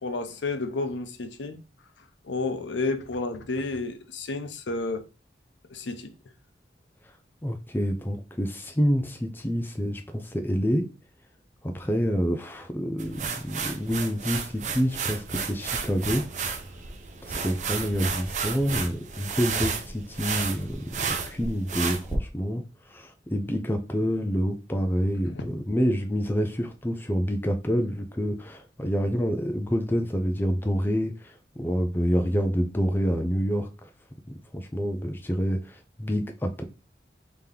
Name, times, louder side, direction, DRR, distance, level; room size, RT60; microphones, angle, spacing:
voice 1, 0.0-1.6 2.2-5.1 5.7-6.1, left 3 dB, 85° left, 0.6 m, -31 dB
voice 2, 7.4-10.9 11.7-16.2 17.3-22.6 22.9-33.7 34.3-36.6, equal, 10° left, 0.4 m, -27 dB
sound 1, 13.0-22.2, right 5 dB, 40° right, 0.5 m, -32 dB
3.5 x 2.9 x 3.6 m
head